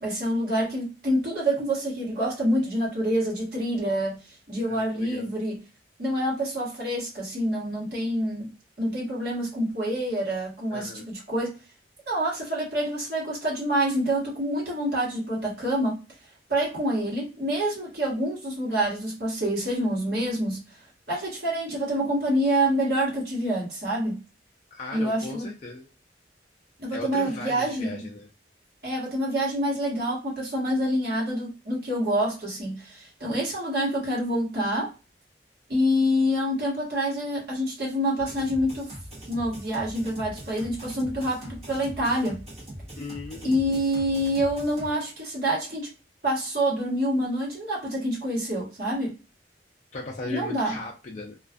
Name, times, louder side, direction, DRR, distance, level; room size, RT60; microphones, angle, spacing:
voice 1, 0.0-4.2 4.5-5.6 6.0-8.5 8.8-11.5 12.1-16.0 16.5-20.6 21.1-24.2 24.9-25.5 26.8-28.1 28.8-34.9 35.7-38.9 39.3-42.4 43.4-45.9 46.2-49.1 50.2-50.8, equal, 60° right, -4 dB, 1.3 m, -27 dB
voice 2, 4.7-5.3 10.7-11.1 24.7-25.9 26.9-28.3 43.0-43.6 49.9-51.4, left 2 dB, 40° left, 0 dB, 0.4 m, -37 dB
sound 1, 38.2-44.9, right 1 dB, 35° right, 1.1 m, -41 dB
2.4 x 2.3 x 2.4 m, 0.31 s
head